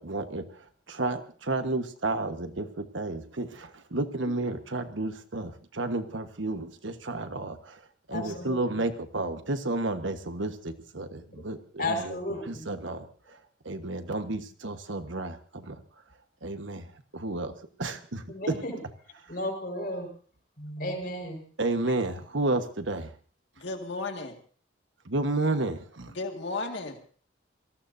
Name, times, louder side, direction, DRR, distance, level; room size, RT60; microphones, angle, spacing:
voice 1, 0.0-7.8 8.1-12.2 12.4-13.1 13.6-15.8 16.4-16.9 17.1-18.6 21.6-23.1 25.0-26.1, right 2 dB, 75° right, 8 dB, 1.4 m, -32 dB
voice 2, 8.1-8.6 11.8-12.7 18.3-18.7 19.3-20.1 20.6-21.4, left 1 dB, 45° left, 4 dB, 5.0 m, -33 dB
voice 3, 23.6-24.4 26.2-27.1, left 3 dB, 65° left, 4 dB, 2.0 m, -34 dB
26.5 x 18.5 x 2.7 m, 0.43 s
head